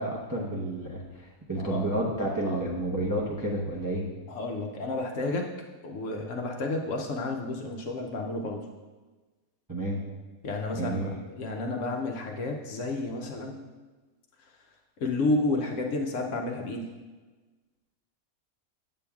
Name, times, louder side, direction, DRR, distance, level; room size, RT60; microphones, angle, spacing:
voice 1, 0.0-4.0 9.7-10.0 10.8-11.2, right 1 dB, 25° right, -4 dB, 0.5 m, -30 dB
voice 2, 1.5-1.9 2.4-2.7 4.3-5.5 5.8-8.6 10.4-11.1 11.4-13.6 15.0-16.9, left 2 dB, 65° left, 1 dB, 0.9 m, -31 dB
8.5 x 7.6 x 2.3 m, 1.3 s
omnidirectional pair, 1.6 m